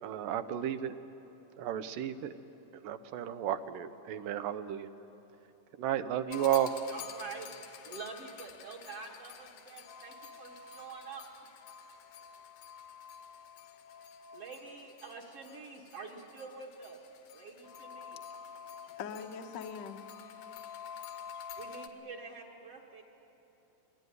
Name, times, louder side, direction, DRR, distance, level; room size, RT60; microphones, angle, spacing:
voice 1, 0.0-1.0 1.6-2.3 2.7-4.9 5.8-6.7, right 11 dB, 85° right, 11 dB, 2.5 m, -33 dB
sound 1, 6.3-21.9, left 6 dB, 80° left, 2.7 m, -48 dB
voice 2, 6.9-7.5 7.8-11.3 14.3-17.0 17.3-18.2 21.6-23.0, right 4 dB, 50° right, -2 dB, 2.5 m, -46 dB
voice 3, 18.9-20.0, left 6 dB, 60° left, 5 dB, 1.2 m, -42 dB
26.5 x 20.0 x 9.5 m, 3.0 s
omnidirectional pair, 3.8 m